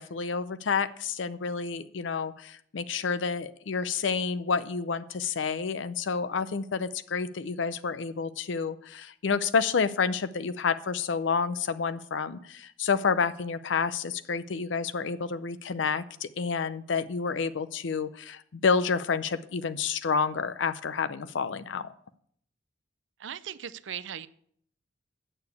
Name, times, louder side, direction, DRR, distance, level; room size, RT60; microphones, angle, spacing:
voice 1, 0.0-21.9, left 5 dB, 80° left, 0.5 m, -29 dB
voice 2, 23.2-24.3, right 9 dB, 85° right, 0.5 m, -38 dB
8.7 x 6.9 x 8.1 m
head